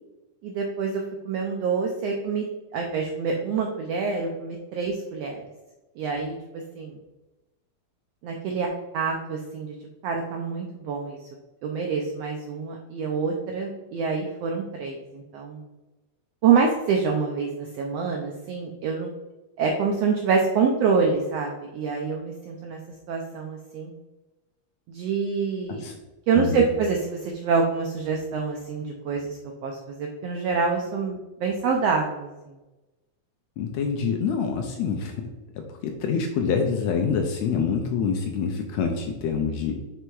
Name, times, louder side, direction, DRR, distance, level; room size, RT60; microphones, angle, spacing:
voice 1, 0.4-2.5 2.7-5.4 6.0-6.4 6.7-6.9 8.2-9.8 10.0-11.3 11.6-15.6 16.4-19.1 19.6-22.8 23.1-23.9 24.9-25.9 26.3-32.5, right 5 dB, 80° right, 1 dB, 1.4 m, -26 dB
voice 2, 26.3-26.7 33.6-35.2 35.6-39.7, left 6 dB, 80° left, 3 dB, 1.7 m, -26 dB
6.2 x 3.3 x 4.6 m, 1.1 s
omnidirectional pair, 3.5 m